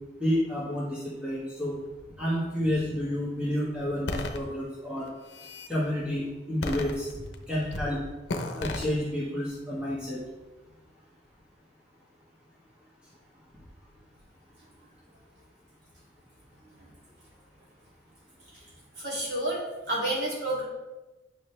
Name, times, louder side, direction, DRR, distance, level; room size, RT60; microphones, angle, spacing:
voice 1, 0.2-1.7 2.2-5.1 5.7-7.1 7.5-8.0 8.5-10.2, left 1 dB, 5° right, -9 dB, 1.6 m, -30 dB
sound 1, 4.1-4.4 5.1-5.7 6.6-7.3 7.7-7.9 8.3-8.8, left 2 dB, 70° left, 0.8 m, -33 dB
voice 2, 19.0-20.6, right 1 dB, 65° right, -5 dB, 2.9 m, -30 dB
9.6 x 6.1 x 3.3 m, 1.1 s
head